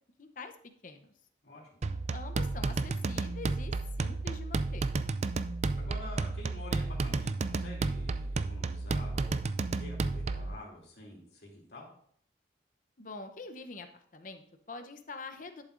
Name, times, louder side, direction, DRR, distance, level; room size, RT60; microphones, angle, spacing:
voice 1, 0.2-0.5 0.8-1.1 2.1-4.9 13.0-15.6, left 3 dB, 45° left, 7 dB, 0.8 m, -45 dB
sound 1, 1.8-10.5, right 3 dB, 40° right, 0.4 m, -32 dB
voice 2, 5.8-11.9, left 1 dB, 60° left, -2 dB, 2.9 m, -48 dB
11.5 x 7.2 x 2.6 m, 0.63 s
head